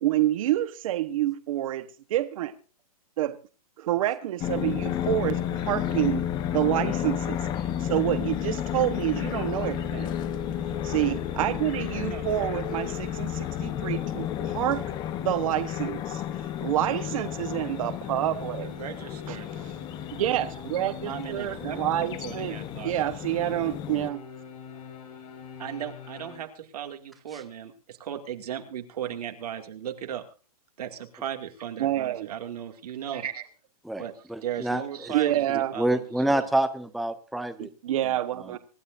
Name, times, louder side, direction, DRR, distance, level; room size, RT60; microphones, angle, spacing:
voice 1, 0.0-2.5 3.2-3.4 3.8-6.3 6.5-7.4 7.8-10.1 10.8-14.8 15.2-16.2 16.6-18.7 19.3-19.4 20.1-22.5 22.8-24.2 31.8-32.3 35.1-35.7 37.6-38.6, right 13 dB, 60° right, 1.2 m, -28 dB
sound 1, 4.4-24.1, left 10 dB, 20° left, 0.9 m, -32 dB
sound 2, 7.2-26.4, left 6 dB, 85° left, 5.5 m, -44 dB
voice 2, 18.6-19.5 21.1-23.1 25.6-30.2 30.8-33.5 34.0-34.1 34.4-36.5, right 10 dB, 85° right, 2.4 m, -37 dB
voice 3, 34.3-35.1 35.5-37.7, right 1 dB, ahead, 0.6 m, -27 dB
25.0 x 12.0 x 2.6 m
hypercardioid pair, 160°, 19 cm